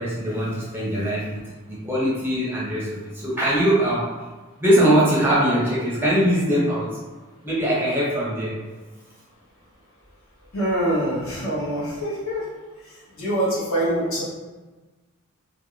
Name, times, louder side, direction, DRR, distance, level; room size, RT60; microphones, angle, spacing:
voice 1, 0.0-1.4 1.7-4.1 4.6-6.9 7.4-8.6, equal, 10° right, -7 dB, 0.6 m, -21 dB
voice 2, 10.5-12.4 13.2-14.2, right 1 dB, 70° left, -7 dB, 0.9 m, -24 dB
2.4 x 2.1 x 3.0 m, 1.3 s
head